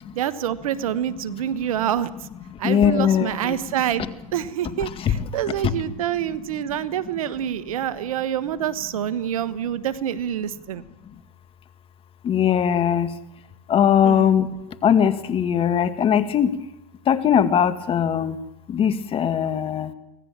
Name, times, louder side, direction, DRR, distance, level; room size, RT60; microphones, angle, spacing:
voice 1, 0.1-2.1 2.6-4.1 4.3-10.8 14.0-14.3, right 10 dB, 75° right, 14 dB, 1.4 m, -26 dB
voice 2, 2.6-3.6 4.0-4.1 4.8-5.1 5.6-5.7 12.2-13.1 13.7-14.5 14.8-16.5 17.1-18.4 18.7-19.9, left 8 dB, 30° left, 11 dB, 2.0 m, -20 dB
24.5 x 18.5 x 7.5 m, 0.92 s
hypercardioid pair, 110°, 18 cm